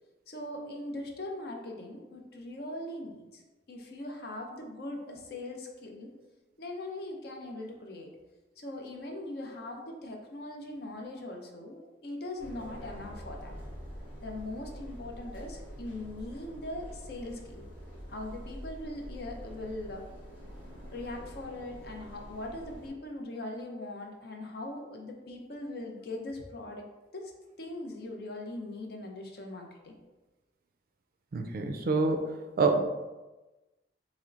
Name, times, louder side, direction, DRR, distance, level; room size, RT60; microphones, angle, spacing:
voice 1, 0.3-3.4 3.7-6.1 6.6-8.1 8.6-13.5 14.2-17.7 18.1-20.0 20.9-26.9 27.1-27.3 27.6-30.0, left 1 dB, 55° left, 2 dB, 0.6 m, -40 dB
sound 1, 12.4-22.9, equal, 75° left, 1.4 m, -45 dB
voice 2, 31.3-32.3 32.6-32.8, right 3 dB, 50° right, 5 dB, 0.3 m, -26 dB
4.3 x 3.0 x 2.5 m, 1.1 s
head